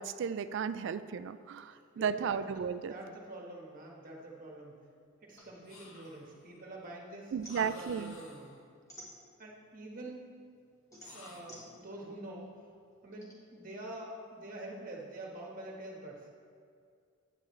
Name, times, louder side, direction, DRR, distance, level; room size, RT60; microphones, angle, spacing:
voice 1, 0.0-2.9 7.3-8.2, right 7 dB, 55° right, 13 dB, 0.3 m, -34 dB
voice 2, 1.7-4.8 5.2-8.6 9.4-10.4 11.1-12.5 13.0-16.3, right 1 dB, 40° right, -2 dB, 1.4 m, -46 dB
sound 1, 5.4-6.9 7.2-9.7 10.2-13.3, equal, 15° left, 1.4 m, -54 dB
sound 2, 5.6-6.4 7.4-8.6 11.0-11.7, left 2 dB, 70° left, 1.3 m, -53 dB
9.5 x 8.6 x 3.2 m, 2.3 s
head